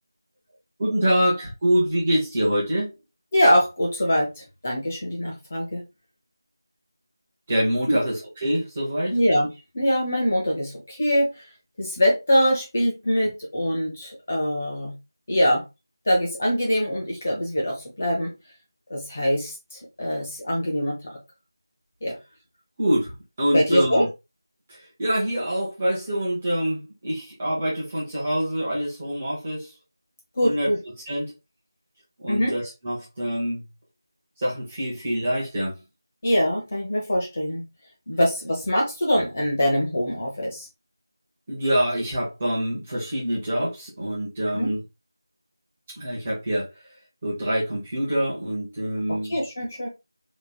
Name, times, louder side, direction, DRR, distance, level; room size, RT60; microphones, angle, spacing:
voice 1, 0.8-2.9 7.5-9.1 22.8-23.1 23.4-24.1 24.7-29.7 30.4-30.7 31.0-31.3 32.2-33.6 34.4-35.8 41.5-44.8 46.0-46.7 47.2-49.4, equal, 15° right, 1.0 m, -25 dB
voice 2, 3.3-5.8 7.9-8.0 9.1-9.5 9.7-11.3 11.8-14.9 15.3-15.6 16.1-18.3 18.9-21.2 22.0-22.2 23.5-24.0 30.4-30.8 32.3-32.5 36.2-37.6 38.1-40.7 44.5-44.7 49.3-49.9, equal, 30° left, 1.0 m, -23 dB
3.3 x 3.1 x 2.3 m
figure-of-eight pair, 175°, 2 cm